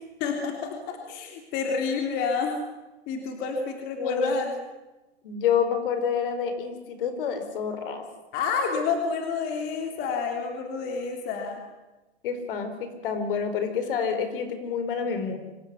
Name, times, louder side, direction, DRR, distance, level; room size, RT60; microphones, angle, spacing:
voice 1, 0.2-2.6 3.1-4.5 8.3-11.6, left 5 dB, 30° left, 3 dB, 3.4 m, -29 dB
voice 2, 4.0-4.4 5.2-8.0 12.2-15.4, left 7 dB, 55° left, 9 dB, 4.7 m, -28 dB
25.5 x 18.5 x 9.7 m, 1.1 s
hypercardioid pair, 160°, 32 cm